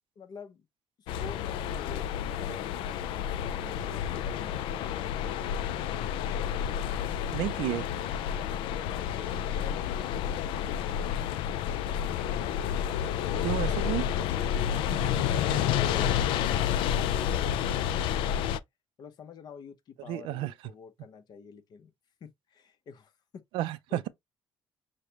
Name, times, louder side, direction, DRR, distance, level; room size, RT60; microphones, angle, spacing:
voice 1, 0.2-0.7 1.0-5.4 8.9-11.2 15.7-16.3 19.0-21.9 22.2-23.4 23.9-24.1, left 6 dB, 55° left, 0.8 m, -47 dB
sound 1, 1.1-18.6, left 9 dB, 85° left, 0.4 m, -30 dB
voice 2, 7.3-7.9 13.4-14.1 20.1-20.5 23.5-24.1, right 15 dB, 85° right, 0.4 m, -31 dB
6.4 x 2.2 x 2.8 m
cardioid pair, 95°, 8 cm